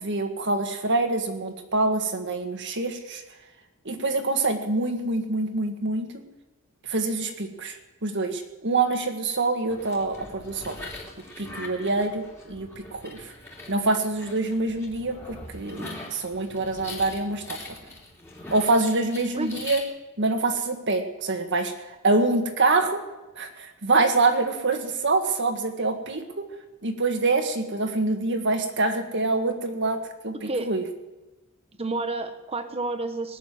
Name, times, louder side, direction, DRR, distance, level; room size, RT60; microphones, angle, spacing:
voice 1, 0.0-3.2 3.8-6.2 6.9-10.8 11.4-13.3 13.7-17.4 18.5-19.8 20.2-21.7 22.0-23.0 23.3-26.4 26.8-30.8, right 3 dB, 55° right, 6 dB, 1.8 m, -25 dB
sound 1, 9.7-19.8, left 2 dB, 10° left, 3.2 m, -42 dB
voice 2, 31.8-33.4, right 2 dB, 25° right, 8 dB, 1.1 m, -30 dB
19.5 x 7.0 x 9.4 m, 1.1 s
head